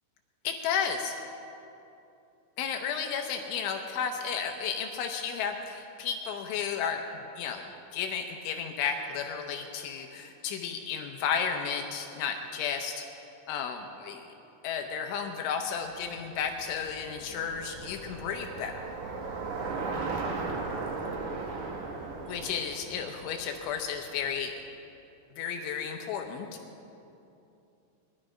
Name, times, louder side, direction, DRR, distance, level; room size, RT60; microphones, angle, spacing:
voice 1, 0.4-1.2 2.6-7.6 7.9-13.0 13.5-14.3 14.6-18.7 22.3-24.5 25.4-26.5, left 7 dB, 80° left, 4 dB, 3.2 m, -33 dB
Bicycle, 15.8-24.2, right 3 dB, 70° right, 1.8 m, -37 dB
21.5 x 12.0 x 5.0 m, 2.8 s
omnidirectional pair, 5.5 m